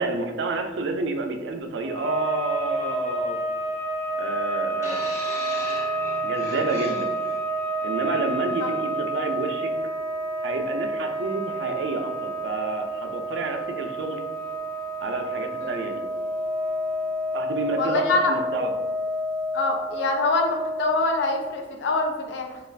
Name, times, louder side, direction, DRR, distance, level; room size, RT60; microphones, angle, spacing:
voice 1, 0.0-3.4 4.2-5.1 6.2-7.2 7.8-9.7 10.4-14.2 15.0-16.0 17.3-18.7, right 3 dB, 85° right, 5 dB, 0.4 m, -29 dB
sound 1, 1.8-21.5, right 1 dB, 45° left, 0.7 m, -29 dB
sound 2, 4.8-7.4 8.3-8.5, equal, 15° left, 0.9 m, -38 dB
voice 2, 17.8-18.3 19.5-22.6, left 2 dB, 85° left, 3 dB, 0.4 m, -25 dB
2.4 x 2.3 x 3.2 m, 1.2 s
head